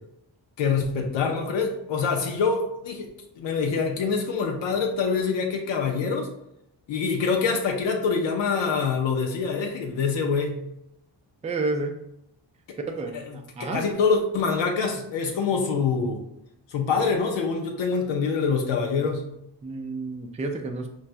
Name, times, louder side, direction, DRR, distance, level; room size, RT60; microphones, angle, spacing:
voice 1, 0.6-3.1 3.4-6.3 6.9-10.6 13.1-13.2 13.6-16.2 16.7-19.3, left 5 dB, 85° left, 2 dB, 0.6 m, -25 dB
voice 2, 11.4-12.0 12.9-13.8 19.6-20.9, right 3 dB, 15° right, 4 dB, 0.4 m, -30 dB
4.3 x 2.3 x 2.5 m, 0.80 s
cardioid pair, 75°, 44 cm